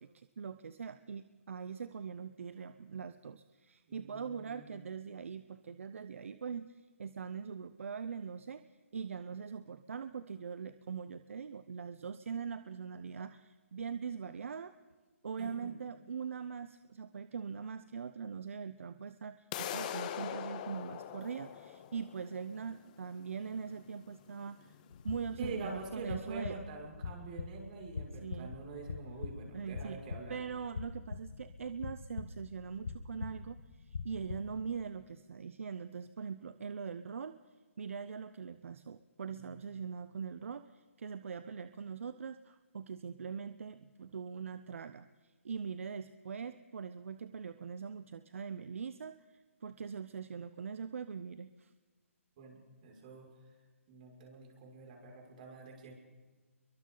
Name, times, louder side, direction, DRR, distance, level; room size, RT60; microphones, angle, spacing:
voice 1, 0.0-8.6 8.9-14.7 15.2-24.8 25.0-26.6 28.2-28.5 29.5-30.0 30.3-37.4 37.8-51.7, right 6 dB, 65° right, 12 dB, 0.8 m, -42 dB
voice 2, 3.9-4.9 15.4-15.8 25.4-30.4 39.3-39.6 52.4-53.3 53.9-55.9, right 4 dB, 35° right, 0 dB, 6.1 m, -46 dB
sound 1, 19.5-25.5, left 10 dB, 30° left, 1.3 m, -43 dB
sound 2, 24.9-34.7, left 4 dB, 70° left, 1.8 m, -44 dB
29.5 x 23.0 x 4.0 m, 1.4 s
hypercardioid pair, 155°, 8 cm